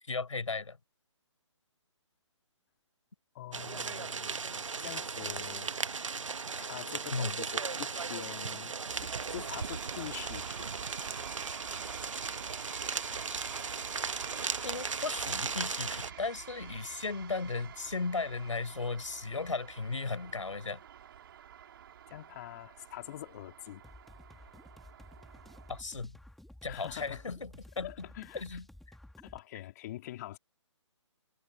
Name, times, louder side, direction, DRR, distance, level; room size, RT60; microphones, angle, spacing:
voice 1, 0.0-0.8 7.1-7.4 14.6-20.8 25.7-26.2 26.6-27.9 28.3-28.6, left 4 dB, 85° left, 4.8 m, -36 dB
voice 2, 3.3-5.8 6.6-10.9 22.1-23.8 26.7-27.4 27.8-28.6 29.2-30.4, left 14 dB, 35° left, 3.6 m, -45 dB
sound 1, 3.5-16.1, right 5 dB, 80° right, 1.4 m, -37 dB
sound 2, 8.9-25.8, right 9 dB, 45° right, 3.8 m, -48 dB
sound 3, 23.8-29.4, left 1 dB, ahead, 2.4 m, -54 dB
hypercardioid pair, 150°, 16 cm